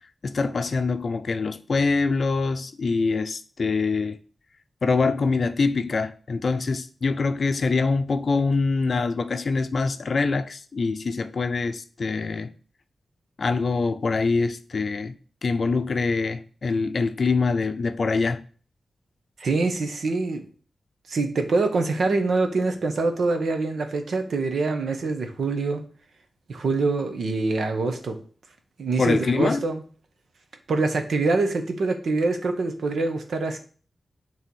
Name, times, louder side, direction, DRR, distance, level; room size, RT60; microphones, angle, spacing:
voice 1, 0.2-4.2 4.8-12.5 13.4-15.2 15.4-18.4 29.0-29.6, left 4 dB, 55° left, 0.5 m, -24 dB
voice 2, 19.4-20.4 21.1-25.8 26.5-28.2 28.8-29.8 30.7-33.6, right 3 dB, 80° right, 1.2 m, -25 dB
7.0 x 3.4 x 6.2 m
wide cardioid pair, 110°, 0 cm